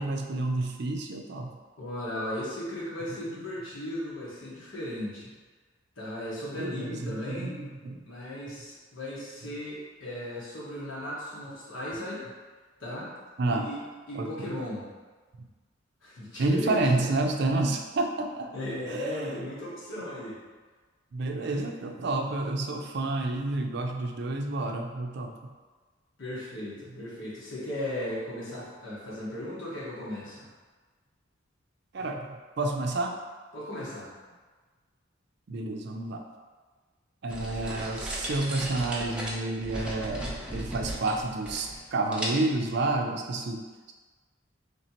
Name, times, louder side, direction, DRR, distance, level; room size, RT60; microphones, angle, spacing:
voice 1, 0.0-1.5 3.2-3.3 6.5-8.0 13.4-13.7 14.1-14.5 15.4-15.5 16.4-18.5 18.9-19.4 21.1-25.3 31.9-33.2 35.5-36.2 37.2-43.7, right 2 dB, 60° right, 3 dB, 0.4 m, -30 dB
voice 2, 1.8-5.3 6.0-7.5 8.0-12.2 12.8-13.1 13.5-13.8 14.1-14.9 16.0-17.1 18.5-20.4 21.3-21.7 26.2-30.5 33.5-34.1, left 1 dB, 85° left, -7 dB, 1.4 m, -36 dB
sound 1, 37.3-41.9 42.1-42.7, right 1 dB, 5° right, 0.5 m, -36 dB
3.3 x 2.9 x 4.3 m, 1.4 s
head